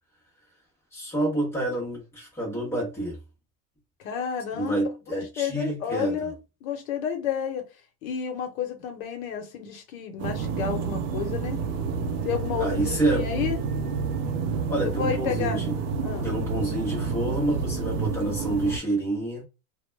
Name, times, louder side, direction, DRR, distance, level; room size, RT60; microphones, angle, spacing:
voice 1, 0.9-3.2 4.5-6.3 12.6-13.3 14.7-15.8 16.2-19.4, right 1 dB, 5° left, 0.7 m, -28 dB
voice 2, 4.0-6.3 6.6-7.6 8.0-11.6 12.2-13.6 14.8-15.6 16.0-16.3, left 8 dB, 65° left, 0.9 m, -31 dB
sound 1, 10.2-18.8, right 5 dB, 60° right, 0.5 m, -29 dB
2.2 x 2.1 x 3.1 m
supercardioid pair, 175°, 44 cm